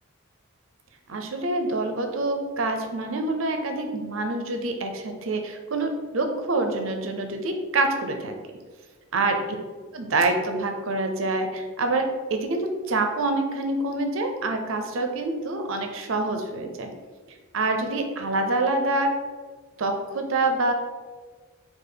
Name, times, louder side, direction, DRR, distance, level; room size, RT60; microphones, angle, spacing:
voice 1, 1.1-8.3 9.1-9.4 9.9-16.9 17.5-19.1 19.8-20.7, right 2 dB, 70° right, 5 dB, 0.6 m, -26 dB
5.1 x 2.4 x 3.9 m, 1.4 s
head